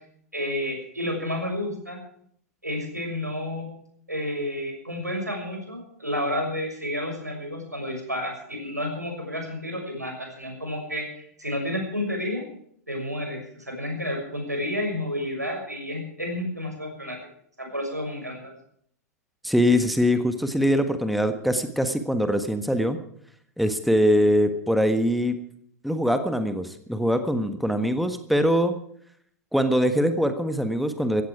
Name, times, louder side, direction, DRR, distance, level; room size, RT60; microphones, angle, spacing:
voice 1, 0.3-2.0 2.6-3.7 4.1-12.4 12.9-17.2 17.6-18.5, left 1 dB, 85° right, 3 dB, 6.4 m, -30 dB
voice 2, 19.4-23.0 23.6-25.3 25.8-28.7 29.5-31.2, equal, ahead, 9 dB, 1.5 m, -23 dB
16.5 x 15.5 x 4.9 m, 0.65 s
figure-of-eight pair, 95°, 9 cm